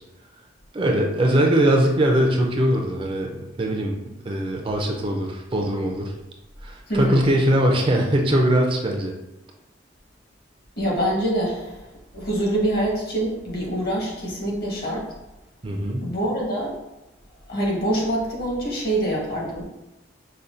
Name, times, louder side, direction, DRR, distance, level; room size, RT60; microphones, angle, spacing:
voice 1, 0.7-3.3 3.6-4.0 4.2-6.1 6.6-9.1 15.6-16.1, right 1 dB, 30° right, 1 dB, 0.4 m, -21 dB
voice 2, 6.9-7.2 10.8-11.9 12.1-15.1 16.0-16.7 17.5-19.6, right 1 dB, 55° left, -3 dB, 1.1 m, -25 dB
5.4 x 2.2 x 2.5 m, 0.97 s
head